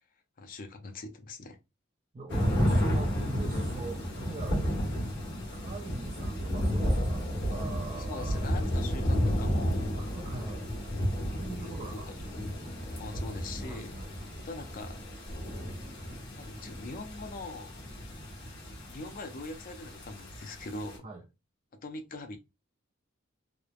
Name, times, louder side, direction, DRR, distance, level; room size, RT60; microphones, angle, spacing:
voice 1, 0.4-1.6 8.1-10.0 11.6-11.8 13.0-13.9 14.4-15.0 16.3-17.8 18.9-21.1 21.8-22.4, left 2 dB, 45° left, 0.5 m, -42 dB
voice 2, 2.1-4.8 5.5-8.5 10.0-10.7 11.3-12.1 12.6-12.7 13.1-13.2 13.7-14.1 21.0-21.2, right 3 dB, 30° right, 0.4 m, -42 dB
sound 1, 2.3-21.0, equal, 60° left, 1.1 m, -32 dB
3.0 x 2.0 x 2.4 m
head